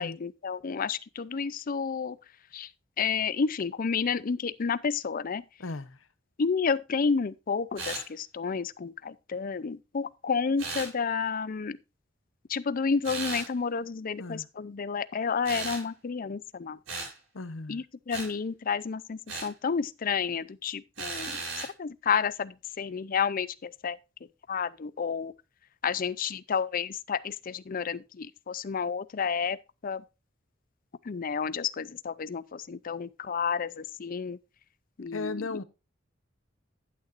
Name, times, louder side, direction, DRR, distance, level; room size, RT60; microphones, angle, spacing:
voice 1, 0.0-2.2 2.5-2.7 3.0-5.4 6.4-11.8 12.5-16.8 17.7-24.0 24.5-25.3 25.8-29.6 29.8-30.0 31.0-34.4 35.0-35.5, left 5 dB, 45° left, 0.5 m, -30 dB
voice 2, 5.6-6.0 14.2-14.5 17.3-17.8 35.1-35.6, left 3 dB, 85° left, 0.9 m, -36 dB
sound 1, 7.8-8.1 10.6-10.9 13.0-13.5 15.4-15.9 16.9-17.1 18.1-18.3 19.3-19.5 21.0-21.7, right 3 dB, 85° right, 6.8 m, -36 dB
11.5 x 9.3 x 2.5 m
head